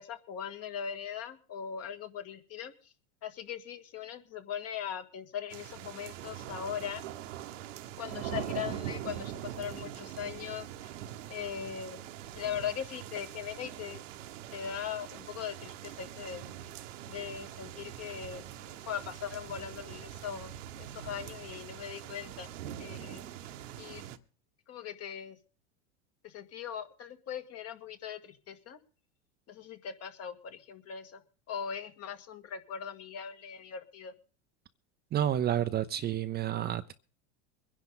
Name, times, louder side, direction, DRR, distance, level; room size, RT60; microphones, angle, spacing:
voice 1, 0.0-2.7 3.2-7.0 8.0-10.9 11.3-12.0 12.4-14.0 14.5-16.5 17.1-22.5 22.8-23.3 23.8-24.0 24.7-25.4 26.2-28.8 29.5-31.2 31.5-34.1, left 8 dB, 40° left, 2.0 m, -40 dB
sound 1, 5.5-24.2, right 11 dB, 80° right, 1.3 m, -43 dB
voice 2, 35.1-36.9, right 11 dB, 25° right, 0.6 m, -30 dB
23.0 x 10.5 x 3.9 m
supercardioid pair, 125°, 37 cm